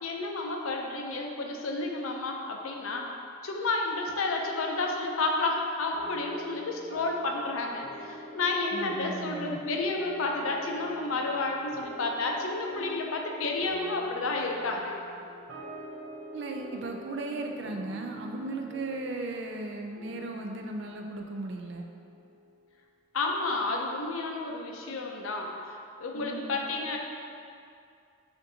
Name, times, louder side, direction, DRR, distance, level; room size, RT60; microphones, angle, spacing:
voice 1, 0.0-3.1 3.4-14.9 23.1-27.0, left 3 dB, 85° left, 1 dB, 0.5 m, -31 dB
sound 1, 5.9-22.7, left 1 dB, 75° right, 0.8 m, -45 dB
voice 2, 8.7-9.6 16.3-21.9 26.1-26.6, right 2 dB, 60° right, 3 dB, 0.4 m, -36 dB
6.6 x 2.6 x 2.7 m, 2.4 s
head